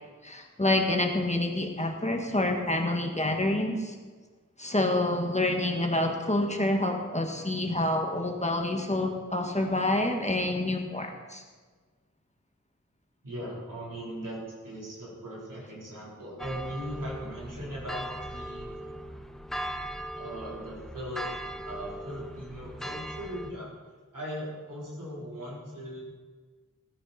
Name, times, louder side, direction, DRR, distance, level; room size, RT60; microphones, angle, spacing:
voice 1, 0.2-3.9 4.6-11.4, left 1 dB, 20° left, 2 dB, 1.7 m, -27 dB
voice 2, 13.2-18.7 20.1-21.3 21.6-23.7 24.1-26.0, equal, 80° right, -4 dB, 4.2 m, -39 dB
sound 1, 16.4-23.5, right 1 dB, ahead, 0.8 m, -39 dB
17.0 x 9.6 x 4.4 m, 1.4 s
wide cardioid pair, 50°, 31 cm